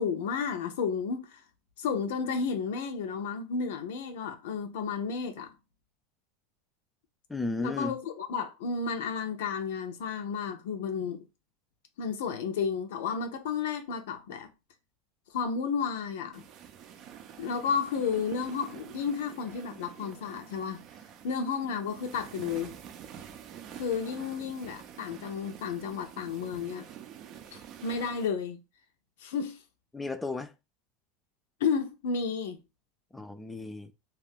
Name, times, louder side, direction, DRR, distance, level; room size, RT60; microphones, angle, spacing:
voice 1, 0.0-1.4 1.8-5.5 7.6-11.3 12.0-14.5 15.3-16.4 17.4-20.8 21.2-22.7 23.8-26.9 27.5-28.6 29.2-29.6 31.6-32.6, left 6 dB, 80° left, 0.6 m, -32 dB
voice 2, 7.3-7.9 29.9-30.5 33.1-33.9, left 3 dB, 10° left, 0.4 m, -34 dB
sound 1, 16.3-28.3, right 9 dB, 45° right, 0.5 m, -47 dB
2.4 x 2.4 x 3.4 m
supercardioid pair, 125°, 0 cm